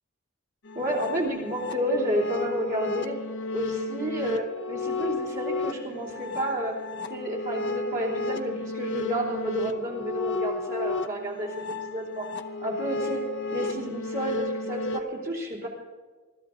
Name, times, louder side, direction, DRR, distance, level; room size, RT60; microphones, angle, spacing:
sound 1, 0.7-15.0, left 3 dB, 60° left, 0.8 m, -33 dB
voice 1, 0.8-3.2 3.5-6.8 7.1-12.3 12.6-13.2 13.5-15.7, right 1 dB, 45° right, -3 dB, 3.4 m, -31 dB
20.5 x 13.5 x 3.8 m, 1.3 s
head